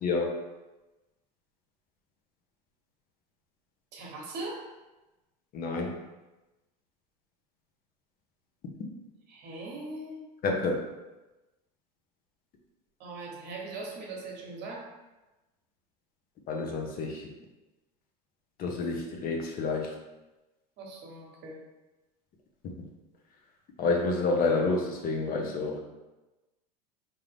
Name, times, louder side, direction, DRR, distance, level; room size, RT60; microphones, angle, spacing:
voice 1, 0.0-0.4 5.5-6.0 10.4-10.8 16.5-17.3 18.6-19.9 23.8-25.8, left 3 dB, 45° left, 1 dB, 0.8 m, -29 dB
voice 2, 3.9-4.7 9.3-10.2 13.0-14.9 20.8-21.6, right 2 dB, 55° right, -1 dB, 1.0 m, -40 dB
3.8 x 2.7 x 3.4 m, 1.1 s
supercardioid pair, 105°, 21 cm